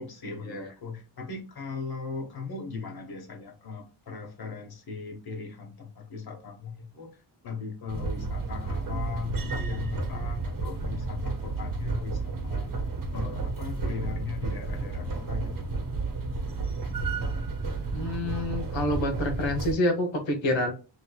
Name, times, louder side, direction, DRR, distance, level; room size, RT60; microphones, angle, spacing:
voice 1, 0.0-7.1 7.4-12.7 13.1-15.7, left 5 dB, 55° left, 2 dB, 1.3 m, -38 dB
sound 1, 7.9-19.7, right 3 dB, 50° right, 0.9 m, -32 dB
voice 2, 17.9-20.7, left 1 dB, 90° left, 4 dB, 1.3 m, -27 dB
6.3 x 3.0 x 2.3 m, 0.34 s
wide cardioid pair, 160°, 44 cm